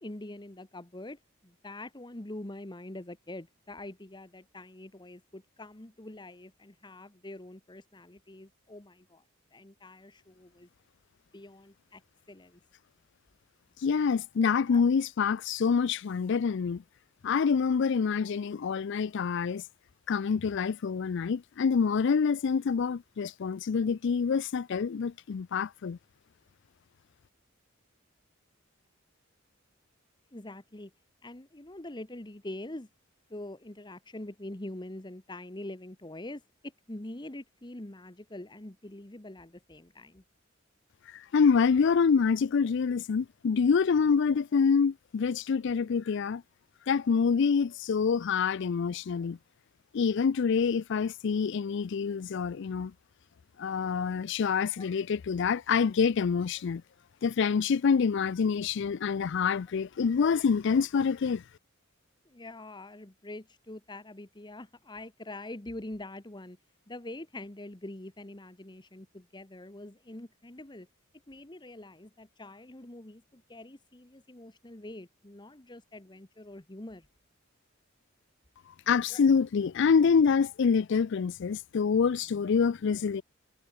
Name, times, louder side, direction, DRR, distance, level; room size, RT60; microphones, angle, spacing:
voice 1, 0.0-9.2 9.5-10.7 11.3-12.0 12.3-12.6 14.7-14.8 30.3-30.9 31.2-32.9 33.3-40.2 54.0-54.2 54.8-54.9 62.2-66.6 66.9-70.9 71.3-77.1 79.1-79.2, left 1 dB, 20° left, 1.3 m, -44 dB
voice 2, 13.8-16.8 17.2-19.6 20.1-26.0 41.1-46.4 46.9-49.4 49.9-52.9 53.6-56.8 57.2-61.4 78.9-83.2, left 6 dB, 60° left, 0.4 m, -26 dB
head